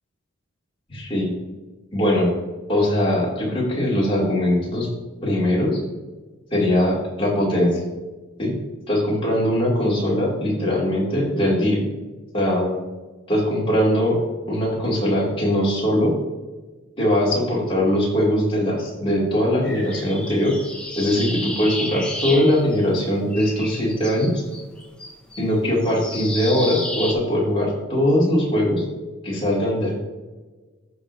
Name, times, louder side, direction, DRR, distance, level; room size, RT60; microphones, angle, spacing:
voice 1, 0.9-1.3 1.9-2.3 2.7-4.9 5.2-5.8 6.5-7.8 8.4-8.6 8.9-11.8 12.3-12.8 13.3-14.2 14.5-16.2 17.0-20.5 20.9-24.4 25.4-28.8 29.2-29.9, left 1 dB, 25° left, -5 dB, 2.6 m, -21 dB
sound 1, 19.6-23.1 23.3-27.1, left 1 dB, 5° left, 0.9 m, -32 dB
14.5 x 4.9 x 2.7 m, 1.3 s
head